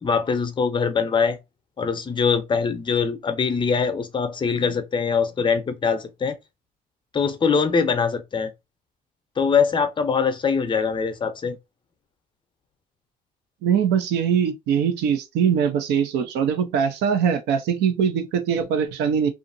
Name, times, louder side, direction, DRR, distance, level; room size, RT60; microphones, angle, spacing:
voice 1, 0.0-1.4 1.8-6.4 7.1-8.5 9.4-11.6, left 5 dB, 30° left, 0.6 m, -22 dB
voice 2, 13.6-19.3, right 7 dB, 85° right, 0.6 m, -22 dB
2.8 x 2.4 x 2.6 m
cardioid pair, 110°, 17 cm